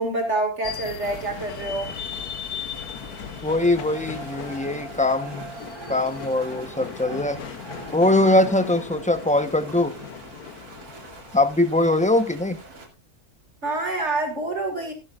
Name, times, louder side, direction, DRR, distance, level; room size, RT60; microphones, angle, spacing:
voice 1, 0.0-1.9 13.6-14.9, right 2 dB, 50° right, 2.4 m, -26 dB
sound 1, 0.6-12.2, left 8 dB, 75° left, 1.4 m, -38 dB
sound 2, 1.0-12.9, right 2 dB, 75° right, 3.1 m, -45 dB
voice 2, 3.4-5.5 5.9-7.4 7.9-9.9 11.3-12.6, left 2 dB, 5° left, 0.7 m, -21 dB
sound 3, 3.5-10.1, right 4 dB, 30° right, 3.6 m, -42 dB
15.0 x 11.5 x 2.5 m
omnidirectional pair, 1.6 m